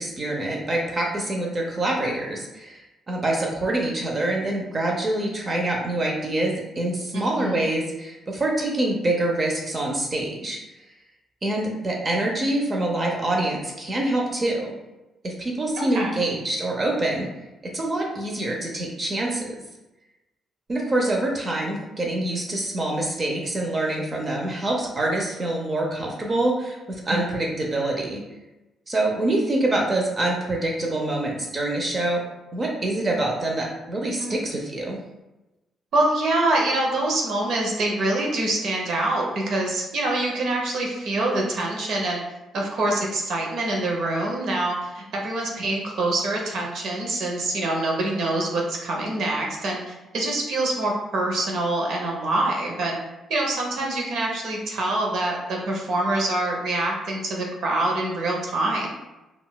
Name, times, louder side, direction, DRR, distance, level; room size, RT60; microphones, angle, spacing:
voice 1, 0.0-10.6 11.4-14.7 15.2-17.3 17.7-19.5 20.7-28.2 28.9-32.2 32.5-35.0, right 1 dB, 35° right, -1 dB, 0.5 m, -25 dB
voice 2, 7.1-7.6 15.8-16.2 27.1-27.2 34.2-34.4 35.9-42.2 42.5-53.0 53.3-58.9, right 2 dB, 70° right, -1 dB, 0.7 m, -25 dB
3.7 x 2.3 x 2.2 m, 1.0 s
cardioid pair, 90°, 0 cm